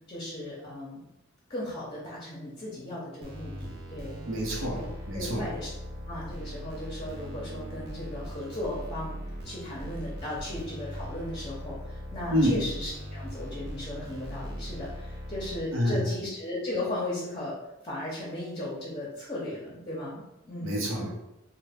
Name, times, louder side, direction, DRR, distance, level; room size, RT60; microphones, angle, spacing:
voice 1, 0.1-1.0 1.5-4.2 4.7-5.7 6.1-9.2 9.4-17.6 17.8-20.8, left 1 dB, 25° left, -6 dB, 0.7 m, -36 dB
sound 1, 3.2-15.6, equal, 50° right, 0.6 m, -40 dB
voice 2, 4.2-5.5 12.3-12.6 15.7-16.0 20.6-21.1, equal, 80° right, -2 dB, 0.8 m, -28 dB
3.3 x 2.2 x 3.4 m, 0.94 s
head